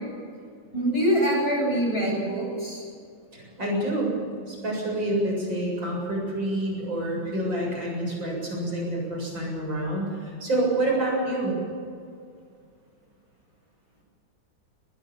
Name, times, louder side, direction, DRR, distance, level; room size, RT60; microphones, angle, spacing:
voice 1, 0.7-2.8, equal, 30° left, -1 dB, 8.0 m, -24 dB
voice 2, 3.3-11.6, right 1 dB, 75° right, -1 dB, 8.2 m, -28 dB
21.0 x 21.0 x 7.3 m, 2.2 s
omnidirectional pair, 2.1 m